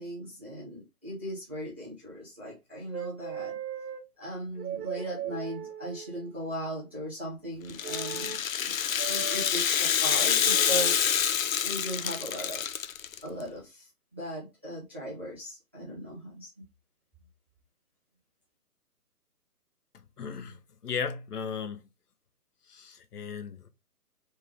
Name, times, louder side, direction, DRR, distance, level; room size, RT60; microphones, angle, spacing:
voice 1, 0.0-3.6 4.2-8.8 9.0-12.9 13.2-16.5, equal, 10° right, 0.6 m, -38 dB
sound 1, 2.9-4.0 4.6-6.3 7.8-8.4 9.0-9.5 10.4-11.0 11.9-12.2, right 8 dB, 90° right, 0.8 m, -38 dB
Rattle (instrument), 7.7-13.2, left 9 dB, 60° left, 0.5 m, -27 dB
voice 2, 20.2-21.8 22.7-23.7, left 6 dB, 80° left, 0.9 m, -36 dB
3.4 x 3.2 x 3.5 m
hypercardioid pair, 165°, 46 cm